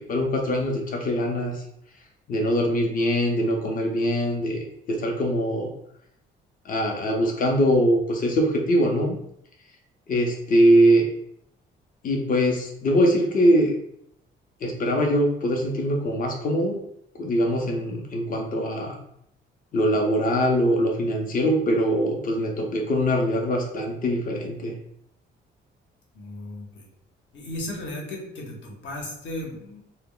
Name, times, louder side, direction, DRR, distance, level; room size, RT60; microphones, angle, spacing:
voice 1, 0.1-1.6 2.3-4.6 4.9-5.7 6.6-9.2 10.1-11.1 12.0-13.7 14.6-16.8 17.2-19.0 19.7-24.7, equal, 45° left, 1 dB, 0.6 m, -22 dB
voice 2, 26.1-26.9 27.3-29.8, left 1 dB, 65° left, 0 dB, 0.9 m, -35 dB
2.1 x 2.0 x 3.6 m, 0.74 s
cardioid pair, 90°, 20 cm